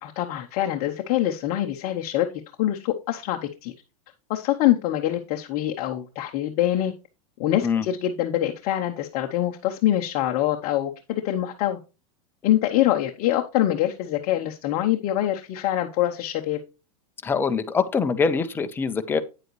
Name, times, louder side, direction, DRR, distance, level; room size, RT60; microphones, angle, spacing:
voice 1, 0.0-2.3 2.6-3.7 4.3-6.9 7.4-11.8 12.4-16.6, left 13 dB, 35° left, 0.8 m, -24 dB
voice 2, 17.2-19.2, left 5 dB, 10° left, 0.5 m, -24 dB
9.2 x 7.6 x 3.1 m
supercardioid pair, 160°, 19 cm